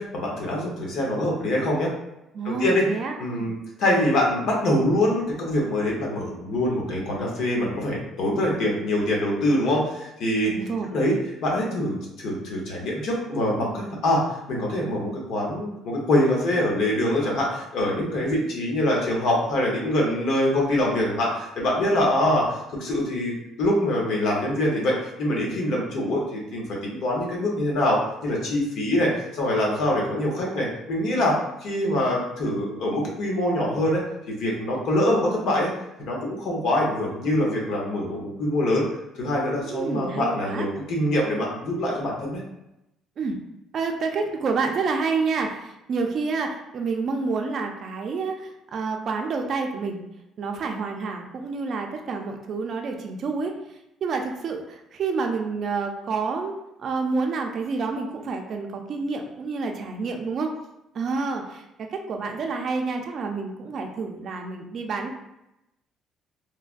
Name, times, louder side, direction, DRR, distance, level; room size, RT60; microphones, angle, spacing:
voice 1, 0.0-1.9 2.4-2.8 3.2-10.5 10.9-11.2 11.4-14.2 14.5-34.0 34.3-35.7 36.0-38.9 39.2-42.4, left 1 dB, 65° left, -2 dB, 0.9 m, -24 dB
voice 2, 2.3-3.5 10.4-11.0 39.5-40.7 43.2-43.4 43.7-50.0 50.4-56.5 56.8-60.5 60.9-65.1, right 4 dB, 50° right, 3 dB, 0.4 m, -28 dB
3.2 x 2.2 x 2.4 m, 0.88 s
cardioid pair, 115°, 0 cm